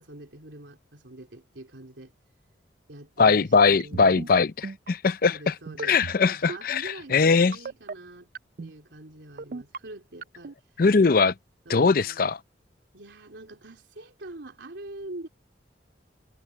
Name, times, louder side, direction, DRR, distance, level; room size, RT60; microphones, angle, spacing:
voice 1, 0.0-2.1 2.9-4.4 5.2-8.3 8.6-10.5 11.6-12.3 12.9-15.3, right 1 dB, 75° right, 3.3 m, -44 dB
voice 2, 3.2-5.5 5.8-7.6 10.8-11.3 11.7-12.4, left 4 dB, 50° left, 0.5 m, -21 dB
sound 1, 3.8-4.3 4.6-4.9 5.7-6.2 6.5-6.8 7.5-7.9 8.3-8.7 9.4-9.8 10.2-10.5, right 4 dB, 50° right, 0.4 m, -36 dB
head